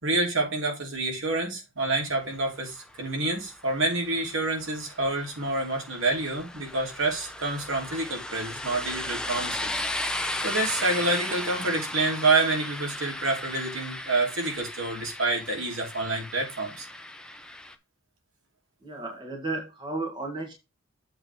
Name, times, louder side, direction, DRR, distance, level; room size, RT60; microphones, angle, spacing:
voice 1, 0.0-9.7 10.4-16.9, right 2 dB, 65° right, 3.2 m, -28 dB
sound 1, 2.8-17.7, left 1 dB, 5° left, 0.6 m, -36 dB
voice 2, 18.8-20.5, right 2 dB, 20° right, 1.7 m, -33 dB
7.7 x 3.5 x 6.0 m
head